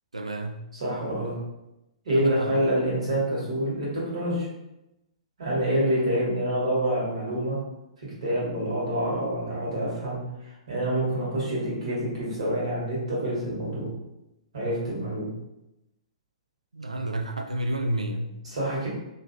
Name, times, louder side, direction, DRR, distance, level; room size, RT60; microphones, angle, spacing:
voice 1, 0.1-0.7 2.1-2.5 16.7-18.4, right 1 dB, 80° right, 5 dB, 0.4 m, -30 dB
voice 2, 0.7-1.3 2.0-4.5 5.4-7.6 8.0-13.9 14.5-15.3 18.4-18.9, right 1 dB, 60° right, -6 dB, 1.5 m, -27 dB
2.7 x 2.5 x 2.6 m, 0.91 s
figure-of-eight pair, 115°, 3 cm